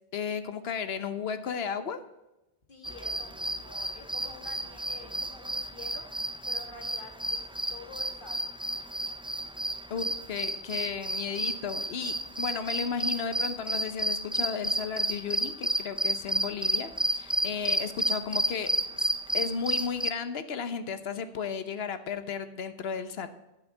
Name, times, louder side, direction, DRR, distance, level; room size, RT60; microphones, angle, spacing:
voice 1, 0.1-2.0 9.9-23.3, left 6 dB, 75° left, 11 dB, 1.1 m, -34 dB
voice 2, 2.7-6.1 6.5-8.4, left 3 dB, 55° left, 3 dB, 1.9 m, -48 dB
sound 1, 2.8-20.1, right 1 dB, 10° right, 0.3 m, -31 dB
14.0 x 5.7 x 8.6 m, 0.96 s
omnidirectional pair, 1.1 m